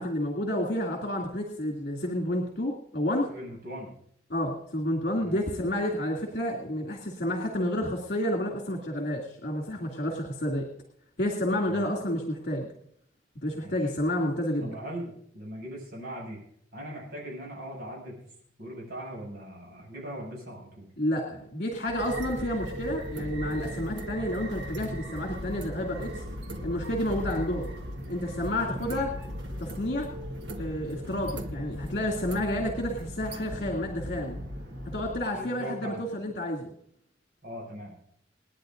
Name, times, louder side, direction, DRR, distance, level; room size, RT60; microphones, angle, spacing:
voice 1, 0.0-3.3 4.3-10.7 11.2-12.7 13.4-14.7 21.0-26.2 26.6-27.7 28.1-29.1 29.6-30.1 30.6-34.4 34.9-36.7, left 1 dB, 60° left, 0 dB, 2.5 m, -30 dB
voice 2, 3.3-3.9 5.2-5.4 11.7-11.9 13.6-13.9 14.6-16.4 16.7-18.2 18.6-20.9 28.8-29.0 35.3-36.1 37.4-37.9, equal, 60° right, -4 dB, 7.0 m, -40 dB
sound 1, 21.8-35.2, equal, 85° right, 1.5 m, -37 dB
28.5 x 9.8 x 2.6 m, 0.68 s
head